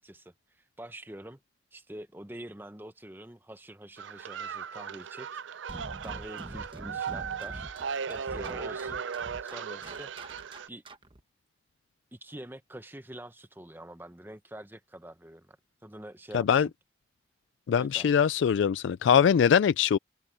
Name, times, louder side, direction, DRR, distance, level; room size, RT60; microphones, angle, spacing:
voice 1, 0.0-1.4 1.7-5.4 6.0-7.7 8.1-9.0 9.4-10.1 10.7-10.8 12.1-15.6 15.8-16.7 17.8-18.1, right 1 dB, 10° right, 0.8 m, -45 dB
sound 1, 4.0-10.7, right 6 dB, 90° right, 0.5 m, -37 dB
sound 2, 5.7-11.2, right 1 dB, 25° right, 1.2 m, -45 dB
voice 2, 16.3-16.7 17.7-20.0, left 7 dB, 85° left, 0.3 m, -22 dB
head